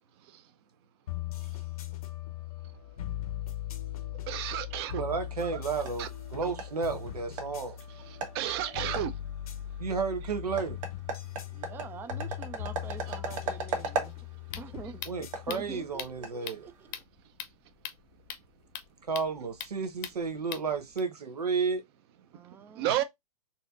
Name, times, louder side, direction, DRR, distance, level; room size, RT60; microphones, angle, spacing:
sound 1, 1.1-16.3, left 12 dB, 75° left, 0.8 m, -40 dB
voice 1, 4.3-5.0 5.5-5.6 6.0-6.1 8.0-9.1 10.2-10.3 13.1-13.2 22.8-23.0, right 12 dB, 40° right, 0.6 m, -32 dB
voice 2, 5.0-6.1 6.3-7.8 9.8-10.8 15.1-16.7 19.1-21.8, right 5 dB, 90° right, 1.0 m, -32 dB
sound 2, 5.2-17.0, right 4 dB, 55° right, 1.4 m, -40 dB
voice 3, 11.5-14.1 14.6-15.1 15.5-16.7 22.3-23.0, right 6 dB, 10° right, 0.3 m, -45 dB
sound 3, 14.1-21.0, left 10 dB, 40° left, 0.7 m, -43 dB
4.1 x 2.8 x 2.4 m
hypercardioid pair, 130°, 19 cm